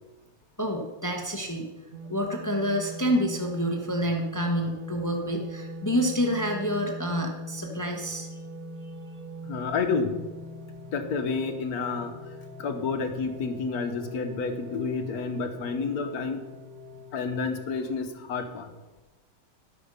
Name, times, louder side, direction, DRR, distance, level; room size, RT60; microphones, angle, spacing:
voice 1, 0.6-1.7 2.1-8.3, equal, 20° left, 2 dB, 0.5 m, -28 dB
sound 1, 1.9-17.4, equal, 50° right, 1.2 m, -41 dB
voice 2, 9.4-10.2 10.9-12.1 12.6-16.4 17.1-18.7, left 4 dB, 55° left, 7 dB, 1.2 m, -30 dB
12.5 x 6.2 x 5.4 m, 1.2 s
omnidirectional pair, 2.2 m